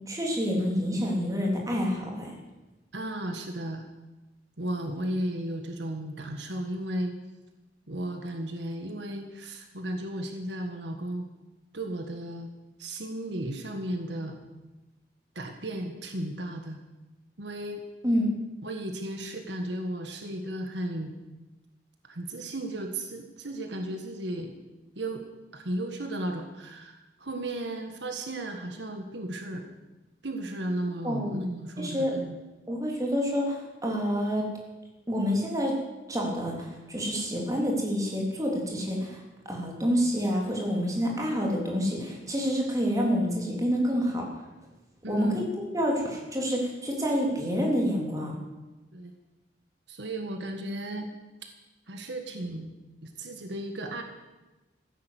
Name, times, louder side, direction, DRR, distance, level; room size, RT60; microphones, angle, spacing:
voice 1, 0.1-2.3 18.0-18.3 31.0-31.4 31.8-32.1 32.7-34.5 35.1-35.7 36.1-39.2 39.5-44.2 45.1-45.4 45.7-48.4, equal, 20° right, -1 dB, 3.5 m, -28 dB
voice 2, 2.9-3.8 4.6-7.1 7.9-11.3 11.7-12.5 12.8-14.4 15.4-16.8 17.4-17.8 18.6-21.1 22.1-24.6 25.0-25.2 25.5-29.7 30.2-32.4 45.0-45.4 48.9-49.1 49.9-51.1 51.9-52.7 53.0-54.0, right 1 dB, 75° right, 4 dB, 1.7 m, -34 dB
15.0 x 10.5 x 8.3 m, 1.1 s
head